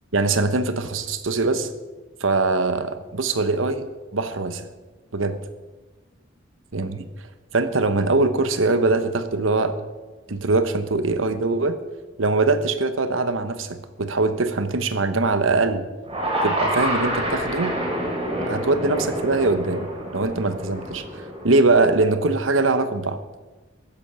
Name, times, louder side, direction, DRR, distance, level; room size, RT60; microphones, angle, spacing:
voice 1, 0.1-1.7 2.2-3.9 4.1-4.7 5.1-5.4 6.7-7.1 7.5-9.8 10.3-11.8 12.2-15.9 16.4-17.8 18.5-23.2, right 3 dB, 85° right, 10 dB, 1.1 m, -22 dB
sound 1, 16.0-22.3, right 1 dB, 30° right, 3.9 m, -28 dB
14.0 x 10.5 x 5.6 m, 1.2 s
head